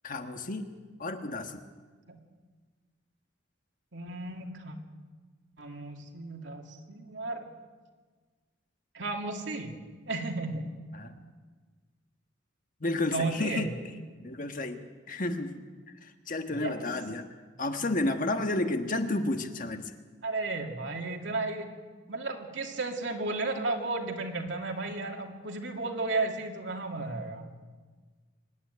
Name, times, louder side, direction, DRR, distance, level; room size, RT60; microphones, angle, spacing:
voice 1, 0.0-0.7 1.0-1.7 10.9-11.2 12.8-13.7 14.2-14.8 15.1-15.6 16.0-17.3 17.6-19.9, left 2 dB, 45° left, 6 dB, 1.4 m, -31 dB
voice 2, 3.9-4.8 5.6-7.5 8.9-9.7 10.1-10.7 13.1-13.7 16.5-16.9 20.2-21.7 22.1-27.5, right 3 dB, 75° right, 2 dB, 2.6 m, -34 dB
25.0 x 11.0 x 9.6 m, 1.4 s
head